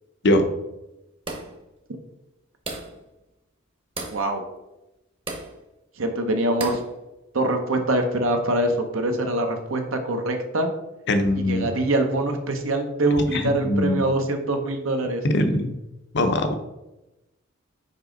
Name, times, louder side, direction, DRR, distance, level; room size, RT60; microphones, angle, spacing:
sound 1, 1.3-1.6 2.7-3.0 4.0-4.3 5.3-5.5 6.6-6.9, right 2 dB, 25° right, 0.9 m, -33 dB
voice 1, 4.1-4.4 6.0-6.8 7.3-10.7 11.5-15.2, right 1 dB, 75° right, 5 dB, 0.9 m, -24 dB
voice 2, 11.1-11.7 13.3-14.0 15.2-15.7 16.1-16.5, left 1 dB, 55° left, 7 dB, 0.7 m, -21 dB
5.4 x 5.0 x 3.9 m, 0.96 s
head